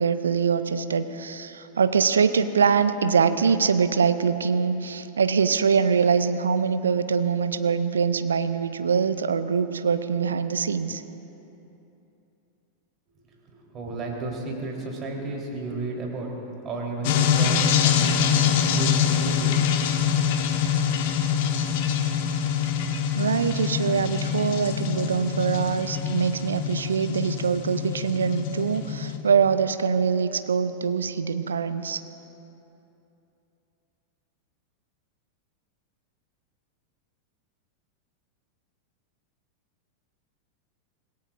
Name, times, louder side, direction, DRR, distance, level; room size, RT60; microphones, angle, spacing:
voice 1, 0.0-11.0 23.2-32.0, right 6 dB, 70° right, 11 dB, 0.6 m, -23 dB
voice 2, 13.5-16.3 16.6-19.6, right 3 dB, 30° right, -1 dB, 3.6 m, -33 dB
sound 1, 17.0-29.2, left 8 dB, 50° left, 1.2 m, -25 dB
25.5 x 19.0 x 2.5 m, 2.9 s
figure-of-eight pair, 90°, 0 cm